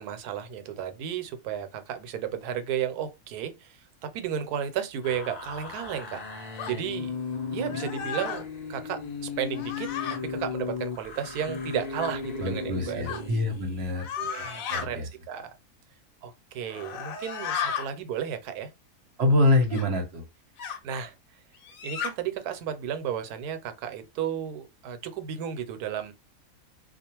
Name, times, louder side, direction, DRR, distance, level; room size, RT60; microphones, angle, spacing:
voice 1, 0.0-6.2 6.7-7.2 7.5-9.9 10.2-13.3 14.2-15.5 16.2-18.7 20.8-21.1 21.8-26.1, right 9 dB, 85° right, 1.1 m, -33 dB
sound 1, 5.0-13.9, left 5 dB, 50° left, 0.5 m, -36 dB
sound 2, 6.6-6.8 7.6-8.4 9.5-10.2 12.0-12.1 13.0-13.2 13.9-14.9 16.6-17.9 19.7-19.9 20.6-20.8 21.6-22.1, left 7 dB, 65° left, 1.0 m, -34 dB
voice 2, 12.4-14.1 14.4-15.0 19.2-20.2, left 2 dB, 50° right, 0.9 m, -25 dB
2.3 x 2.3 x 2.9 m
omnidirectional pair, 1.6 m